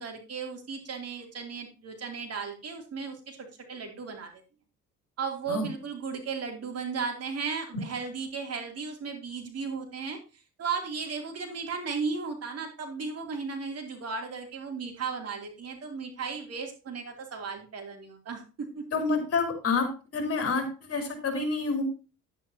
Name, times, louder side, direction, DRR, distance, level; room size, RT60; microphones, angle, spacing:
voice 1, 0.0-3.4 3.7-4.3 5.2-10.2 10.6-18.8, right 5 dB, 55° right, 3 dB, 2.9 m, -35 dB
voice 2, 18.9-19.9 20.1-21.8, left 4 dB, 50° left, 5 dB, 3.6 m, -28 dB
10.5 x 8.9 x 2.8 m, 0.32 s
cardioid pair, 90°, 30 cm